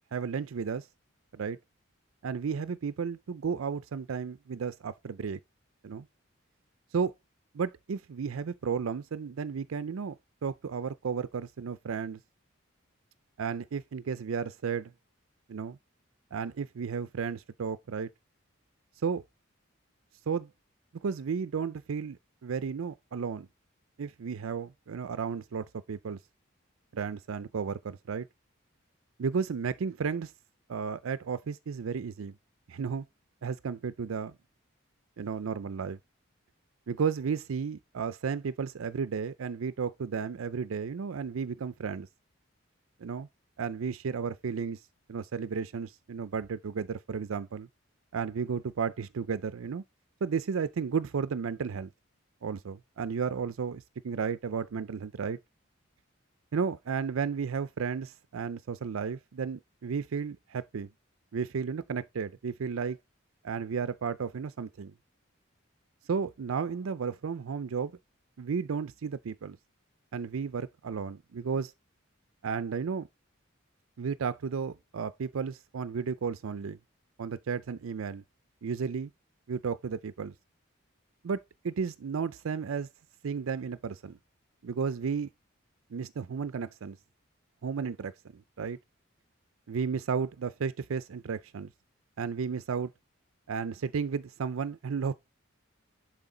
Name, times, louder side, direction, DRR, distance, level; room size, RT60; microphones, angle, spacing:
voice 1, 0.1-0.9 1.3-1.6 2.2-5.4 5.8-6.1 6.9-7.1 7.5-10.2 10.4-12.2 13.4-14.9 15.5-15.8 16.3-18.1 19.0-19.2 20.3-20.5 21.0-22.2 22.4-23.5 24.0-26.2 26.9-28.3 29.2-30.3 30.7-32.3 32.7-33.0 33.4-34.3 35.2-36.0 36.9-42.1 43.0-43.3 43.6-44.8 45.1-47.7 48.1-49.8 50.2-51.9 52.4-55.4 56.5-60.9 61.3-63.0 63.4-64.9 66.1-67.9 68.4-69.6 70.1-71.7 72.4-73.1 74.0-76.8 77.2-78.2 78.6-79.1 79.5-80.3 81.2-81.4 81.6-82.9 83.2-84.2 84.6-85.3 85.9-87.0 87.6-88.8 89.7-91.7 92.2-92.9 93.5-95.1, right 6 dB, 80° right, 0.4 m, -33 dB
11.0 x 4.8 x 3.8 m
head